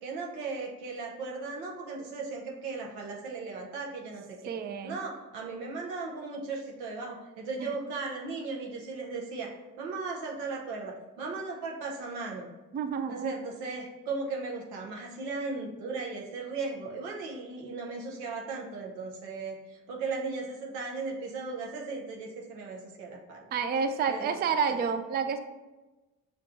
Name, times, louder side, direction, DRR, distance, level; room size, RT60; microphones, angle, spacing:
voice 1, 0.0-4.2 4.8-12.5 13.1-23.5 24.1-24.4 24.7-24.8, right 4 dB, 85° right, -1 dB, 0.7 m, -37 dB
voice 2, 4.5-5.0 7.6-7.7 12.7-13.3 23.5-25.4, right 6 dB, 25° right, 8 dB, 0.3 m, -29 dB
5.8 x 2.3 x 2.5 m, 1.1 s
hypercardioid pair, 40°, 40 cm